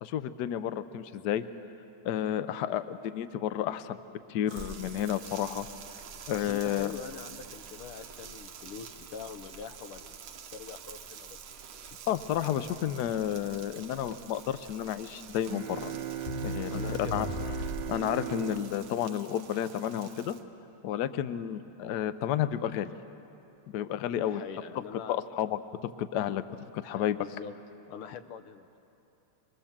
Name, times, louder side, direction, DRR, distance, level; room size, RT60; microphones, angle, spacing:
voice 1, 0.0-1.4 2.0-5.7 6.3-6.9 12.1-15.9 16.4-17.3 17.9-20.4 20.8-22.9 23.7-24.4 25.1-25.6 26.0-26.4 26.7-27.2, left 10 dB, 65° left, 12 dB, 1.1 m, -31 dB
sound 1, 4.5-20.4, right 7 dB, 85° right, 1.9 m, -48 dB
Crackle, 4.6-18.1, left 2 dB, 35° left, 1.3 m, -42 dB
voice 2, 6.3-10.1 10.5-11.4 16.7-17.6 24.2-25.2 26.8-27.5 27.9-28.8, left 7 dB, 90° left, 9 dB, 1.7 m, -44 dB
sound 2, 15.5-20.1, right 11 dB, 65° right, 1.3 m, -39 dB
25.0 x 21.5 x 7.3 m, 2.9 s
omnidirectional pair, 2.3 m